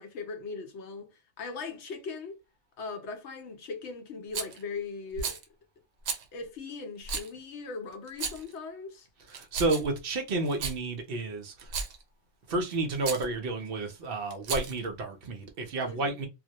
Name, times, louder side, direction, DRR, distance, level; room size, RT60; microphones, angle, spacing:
voice 1, 0.0-2.3 2.8-5.4 6.3-9.1 15.8-16.2, left 4 dB, 75° left, 0.9 m, -39 dB
Rattle, 4.3-4.6 5.2-5.4 6.1-6.2 7.1-7.3 8.1-8.5 9.3-10.0 10.5-10.8 11.6-12.0 13.0-13.3 14.3-14.9, right 5 dB, 85° right, 0.9 m, -34 dB
voice 2, 9.3-11.7 12.5-16.3, right 2 dB, 60° right, 0.7 m, -31 dB
2.2 x 2.1 x 2.7 m
omnidirectional pair, 1.2 m